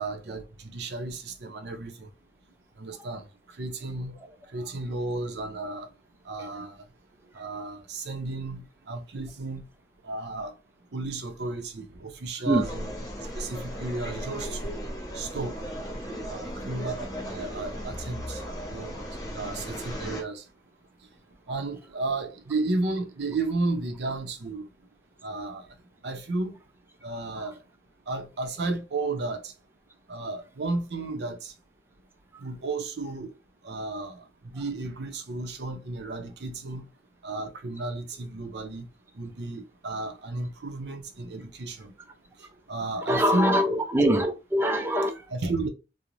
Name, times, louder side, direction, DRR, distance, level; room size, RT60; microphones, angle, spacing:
voice 1, 0.0-2.1 2.8-3.2 3.6-4.2 4.5-5.9 6.3-6.7 7.3-9.6 10.0-10.5 10.9-12.9 13.4-14.7 15.1-15.5 16.3-18.4 18.7-19.0 19.3-20.4 21.5-24.7 25.2-25.6 26.0-26.5 27.0-27.6 28.1-29.5 30.1-31.5 32.4-33.3 33.6-36.8 37.2-38.9 39.2-41.9 42.7-43.6 45.3-45.7, right 2 dB, 75° right, 0.5 m, -33 dB
sound 1, 12.6-20.2, equal, 20° left, 0.8 m, -36 dB
voice 2, 43.1-45.1, equal, 15° right, 0.3 m, -23 dB
2.5 x 2.0 x 3.0 m
head